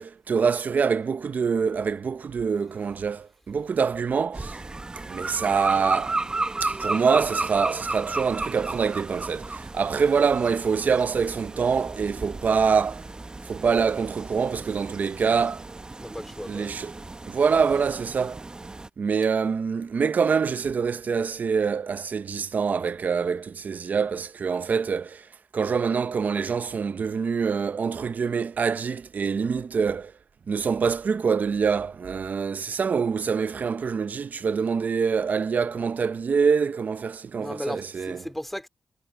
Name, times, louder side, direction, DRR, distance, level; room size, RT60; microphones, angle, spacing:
voice 1, 0.0-4.6 5.1-6.2 6.6-13.1 13.4-15.6 16.5-16.9 17.3-18.4 19.0-25.3 25.5-30.1 30.5-38.2, right 6 dB, 60° right, 0.7 m, -25 dB
sound 1, 4.3-18.9, right 2 dB, 25° right, 1.0 m, -33 dB
voice 2, 16.0-16.8 37.4-38.7, equal, 5° left, 3.0 m, -35 dB
cardioid pair, 80°, 3 cm